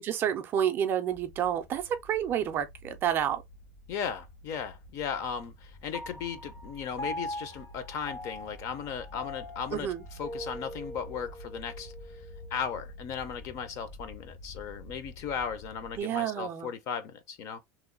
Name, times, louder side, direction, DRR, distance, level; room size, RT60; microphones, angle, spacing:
voice 1, 0.0-3.4 9.7-10.0 16.0-16.7, right 9 dB, 30° right, 0.4 m, -29 dB
sound 1, 1.1-16.0, left 1 dB, 65° left, 1.4 m, -49 dB
voice 2, 3.9-9.9 10.2-11.9 12.5-17.6, left 7 dB, 40° left, 0.6 m, -36 dB
Piano, 5.9-12.6, left 1 dB, 80° left, 1.6 m, -42 dB
3.0 x 2.1 x 3.7 m
cardioid pair, 165°, 8 cm